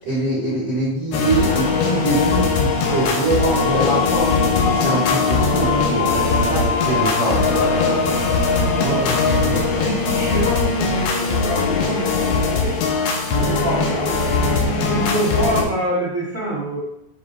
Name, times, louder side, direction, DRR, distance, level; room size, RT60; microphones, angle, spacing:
voice 1, 0.0-4.3 4.6-8.3, right 1 dB, 35° right, -9 dB, 1.5 m, -24 dB
sound 1, 1.1-15.6, left 4 dB, 75° left, 2.5 m, -20 dB
voice 2, 5.1-5.4 8.7-12.7 13.3-14.2 14.7-16.8, right 1 dB, 55° right, -9 dB, 0.9 m, -26 dB
6.9 x 5.1 x 2.7 m, 0.82 s
omnidirectional pair, 5.3 m